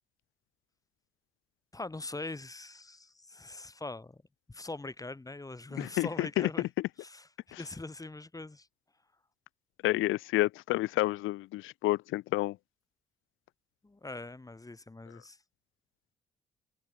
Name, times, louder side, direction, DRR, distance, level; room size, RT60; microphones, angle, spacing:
voice 1, 1.7-4.2 4.5-6.7 7.0-7.3 7.6-8.7 13.8-15.4, left 2 dB, 15° left, 4.5 m, -42 dB
voice 2, 5.8-6.7 7.5-7.6 9.8-12.6, left 17 dB, 90° left, 0.6 m, -29 dB
open air
cardioid pair, 90°, 20 cm